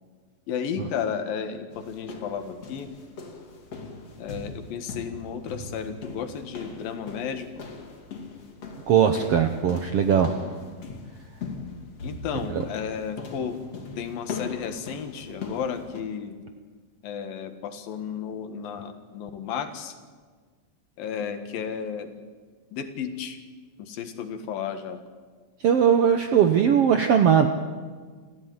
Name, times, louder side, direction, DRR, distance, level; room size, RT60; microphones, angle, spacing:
voice 1, 0.5-2.9 4.2-7.5 12.0-13.6 14.0-16.4 17.0-20.0 21.0-22.2 22.7-23.4 23.8-25.0, left 7 dB, 80° left, 8 dB, 3.4 m, -33 dB
sound 1, 1.7-16.0, left 4 dB, 45° left, 3.6 m, -40 dB
voice 2, 8.9-10.3 25.6-27.5, right 8 dB, 70° right, 7 dB, 1.5 m, -19 dB
27.5 x 14.5 x 9.5 m, 1.5 s
omnidirectional pair, 4.1 m